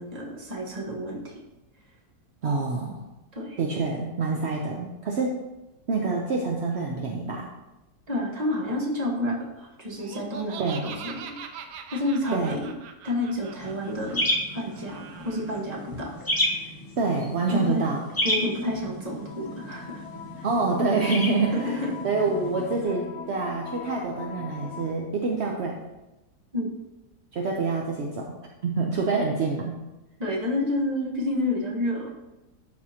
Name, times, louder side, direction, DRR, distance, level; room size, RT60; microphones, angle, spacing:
voice 1, 0.0-1.4 3.3-3.6 8.1-11.3 11.9-12.7 13.0-14.2 14.5-16.6 17.5-17.9 18.2-20.0 20.4-20.5 21.5-22.0 26.5-26.7 30.2-32.1, left 1 dB, 25° right, -2 dB, 1.2 m, -29 dB
voice 2, 2.4-3.0 3.6-5.4 5.9-7.5 10.6-10.9 12.3-12.5 17.0-18.0 20.4-25.8 27.3-28.3 28.6-29.8, right 3 dB, 60° right, 0 dB, 0.7 m, -26 dB
Laughter, 10.0-15.6, right 7 dB, 75° right, 1.2 m, -42 dB
sound 1, 13.5-22.8, left 1 dB, 20° left, 0.6 m, -32 dB
sound 2, 19.1-24.9, left 8 dB, 70° left, 1.0 m, -41 dB
12.0 x 4.2 x 2.8 m, 1.0 s
omnidirectional pair, 1.8 m